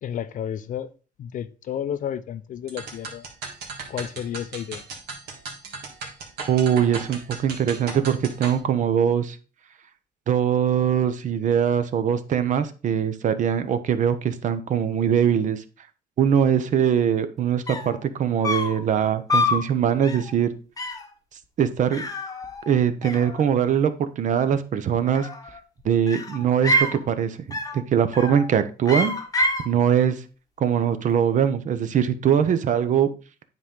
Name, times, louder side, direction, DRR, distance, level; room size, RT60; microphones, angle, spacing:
voice 1, 0.0-0.9 1.2-3.3 3.9-4.8, left 9 dB, 50° left, 0.5 m, -31 dB
sound 1, 2.7-8.6, right 4 dB, 75° right, 1.8 m, -36 dB
voice 2, 6.5-9.4 10.3-15.6 16.2-20.5 21.6-22.0 22.7-25.3 25.8-27.4 27.7-29.1 29.6-30.2 30.6-33.1, right 8 dB, 50° right, 0.7 m, -22 dB
sound 2, 17.4-17.5 17.7-18.0 18.4-18.8 19.3-19.7 20.0-20.3 20.8-21.1 21.9-22.8 23.0-23.7 25.0-25.6 26.1-27.0 27.5-27.8 28.1-28.5 28.9-29.7, left 1 dB, 20° left, 0.9 m, -26 dB
9.6 x 3.8 x 3.7 m
cardioid pair, 110°, 17 cm